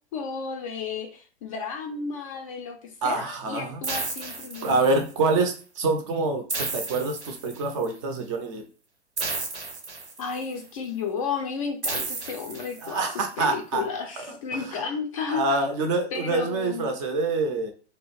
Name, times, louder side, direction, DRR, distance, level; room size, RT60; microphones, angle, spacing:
voice 1, 0.1-4.8 10.2-15.7 16.1-16.9, left 5 dB, 35° left, 3 dB, 0.4 m, -33 dB
voice 2, 3.0-3.8 4.6-8.6 12.8-13.8 14.3-14.8 15.3-17.7, right 3 dB, 30° right, 5 dB, 0.4 m, -26 dB
sound 1, 3.8-5.2 6.5-7.9 9.2-10.5 11.8-13.2, right 3 dB, 85° right, 0.7 m, -33 dB
2.3 x 2.0 x 3.1 m, 0.37 s
figure-of-eight pair, 105°, 33 cm